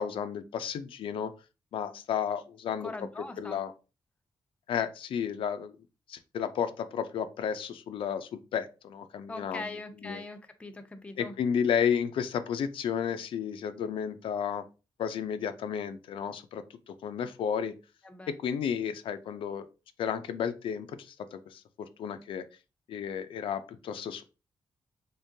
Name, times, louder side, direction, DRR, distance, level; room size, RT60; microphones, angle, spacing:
voice 1, 0.0-1.3 1.7-2.9 3.4-3.7 4.7-5.7 6.1-9.7 10.0-10.2 11.2-14.6 15.0-17.7 18.3-19.7 20.0-21.6 22.0-22.5 22.9-24.2, left 8 dB, 80° left, 9 dB, 0.4 m, -32 dB
voice 2, 2.8-3.6 9.3-11.3 18.0-18.3, left 2 dB, 15° left, 6 dB, 0.5 m, -41 dB
3.6 x 3.4 x 2.7 m, 0.31 s
wide cardioid pair, 155°, 9 cm